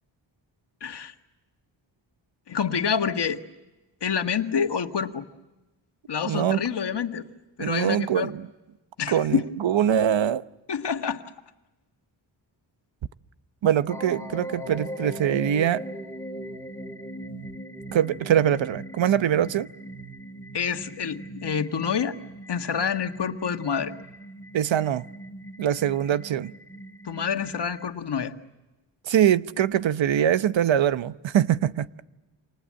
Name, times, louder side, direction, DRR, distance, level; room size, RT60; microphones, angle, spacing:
voice 1, 0.8-1.1 2.5-3.4 4.0-5.2 6.1-7.2 7.6-8.3 9.0-9.5 10.7-11.2 20.5-22.2 22.5-23.9 27.1-28.3, left 7 dB, 60° left, 1.8 m, -27 dB
voice 2, 6.2-6.6 7.6-8.5 9.1-10.4 13.6-15.8 17.9-19.7 24.5-25.1 25.6-26.5 29.0-31.9, right 10 dB, 75° right, 0.9 m, -23 dB
sound 1, 13.9-27.9, right 1 dB, 5° left, 3.2 m, -39 dB
28.5 x 27.0 x 7.6 m
cardioid pair, 95°, 46 cm